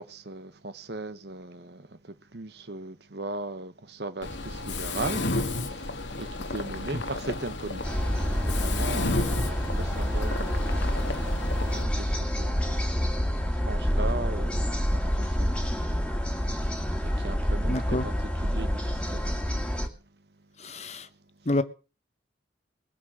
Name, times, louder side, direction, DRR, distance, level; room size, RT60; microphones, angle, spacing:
voice 1, 0.0-1.9 2.3-5.7 6.1-10.7 11.7-13.1 13.3-15.5 17.2-18.1 18.4-19.2, right 2 dB, 65° right, 1.2 m, -38 dB
Mechanisms, 4.2-11.8, left 2 dB, 80° left, 2.0 m, -32 dB
sound 1, 7.8-19.9, equal, 5° left, 2.0 m, -28 dB
voice 2, 17.7-18.1 20.6-21.1 21.5-21.6, left 2 dB, 40° left, 1.1 m, -28 dB
20.0 x 8.5 x 6.4 m
head